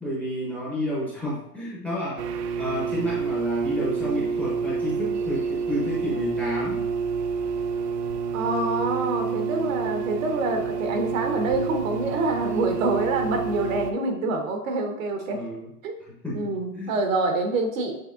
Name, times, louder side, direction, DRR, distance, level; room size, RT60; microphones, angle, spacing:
voice 1, 0.0-2.2 2.6-6.8 15.3-15.7 16.2-16.9, left 1 dB, 5° left, -6 dB, 0.8 m, -30 dB
sound 1, 2.2-13.9, right 5 dB, 75° right, 0.7 m, -28 dB
voice 2, 8.3-15.4 15.8-16.0 16.3-18.0, right 2 dB, 55° right, 4 dB, 1.0 m, -26 dB
6.6 x 3.3 x 2.4 m, 0.82 s
hypercardioid pair, 140°, 48 cm